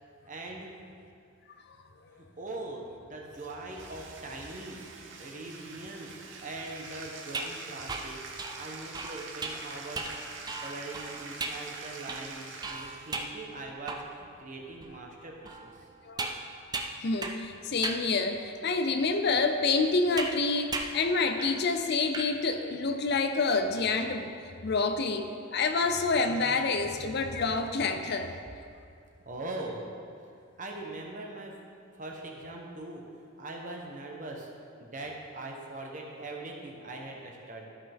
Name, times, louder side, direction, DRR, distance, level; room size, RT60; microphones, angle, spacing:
voice 1, 0.2-0.7 2.1-15.7 29.2-29.8 30.6-31.5 31.9-34.5 34.8-37.7, right 2 dB, 40° right, 0 dB, 1.1 m, -41 dB
Bathtub (filling or washing), 3.3-13.3, right 4 dB, 60° right, 0.9 m, -45 dB
sound 1, 7.3-14.3 14.8-14.9 15.5-17.5 17.8-18.1 18.8-18.9 20.2-20.4 20.7-21.0 21.4-21.6 21.9-22.3, right 3 dB, 20° right, 0.5 m, -37 dB
voice 2, 17.0-24.3 24.6-28.4, left 3 dB, 50° left, 7 dB, 0.5 m, -28 dB
13.5 x 5.6 x 3.6 m, 2.5 s
head